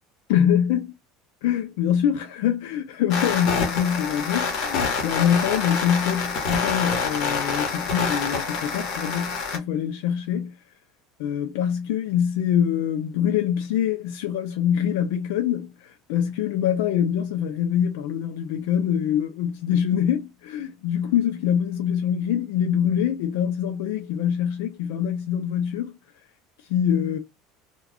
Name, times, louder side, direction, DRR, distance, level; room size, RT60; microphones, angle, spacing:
voice 1, 0.3-0.9 1.4-10.6 11.2-26.0 26.6-27.2, left 9 dB, 80° left, 0.4 m, -24 dB
sound 1, 3.1-9.6, left 5 dB, 60° left, 1.1 m, -27 dB
2.3 x 2.2 x 3.4 m
supercardioid pair, 120°, 0 cm